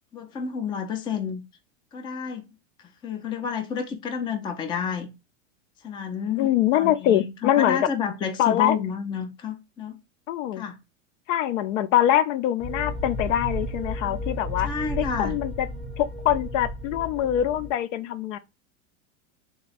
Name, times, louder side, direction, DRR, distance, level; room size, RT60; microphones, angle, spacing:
voice 1, 0.1-1.4 1.9-2.5 3.0-5.1 5.8-10.0 10.6-10.8 14.6-15.4, left 7 dB, 15° left, 0.3 m, -30 dB
voice 2, 6.4-7.9 8.4-8.8 10.3-10.7 11.3-14.7 15.0-15.7 16.0-18.4, left 12 dB, 70° left, 0.5 m, -23 dB
sound 1, 12.6-17.7, left 1 dB, 5° right, 0.9 m, -33 dB
3.5 x 2.2 x 4.0 m
supercardioid pair, 125°, 40 cm